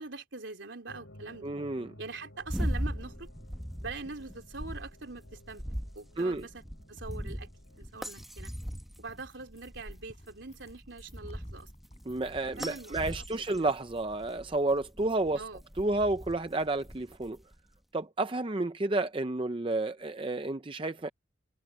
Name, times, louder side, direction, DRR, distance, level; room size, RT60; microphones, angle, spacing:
voice 1, 0.0-1.5 2.0-3.3 3.8-5.6 6.0-7.5 7.8-8.5 9.0-11.7 12.4-13.5 15.4-15.6, right 3 dB, 65° right, 3.6 m, -43 dB
sound 1, 0.9-7.8, left 1 dB, 85° left, 8.0 m, -56 dB
voice 2, 1.4-1.9 6.2-6.5 12.1-15.4 15.8-17.4 17.9-21.1, right 2 dB, 25° right, 0.5 m, -31 dB
sound 2, 2.4-17.6, equal, ahead, 1.0 m, -40 dB
sound 3, 6.7-13.8 14.1-14.5, equal, 35° left, 4.8 m, -59 dB
head